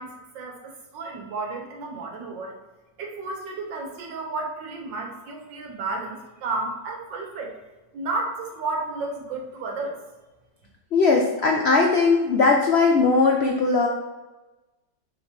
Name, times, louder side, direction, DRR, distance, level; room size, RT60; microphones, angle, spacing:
voice 1, 0.0-2.5 3.0-7.5 7.9-10.0, right 3 dB, 85° right, 1 dB, 1.8 m, -32 dB
voice 2, 10.9-13.9, left 4 dB, 80° left, 1 dB, 0.5 m, -19 dB
6.5 x 4.5 x 3.3 m, 1.1 s
omnidirectional pair, 1.9 m